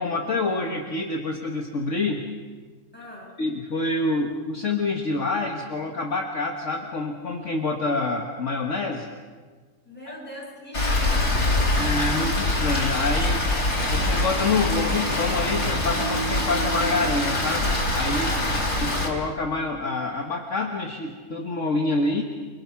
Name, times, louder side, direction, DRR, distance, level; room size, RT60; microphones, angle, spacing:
voice 1, 0.0-2.2 3.4-9.1 11.8-13.4 13.9-18.4 18.8-22.2, left 3 dB, 50° left, 2 dB, 1.9 m, -27 dB
voice 2, 2.9-3.3 9.9-11.8 18.3-18.9, equal, 5° left, -3 dB, 7.1 m, -41 dB
Rain, 10.7-19.1, left 1 dB, 75° left, 4.7 m, -24 dB
29.5 x 24.0 x 5.8 m, 1.5 s
omnidirectional pair, 1.7 m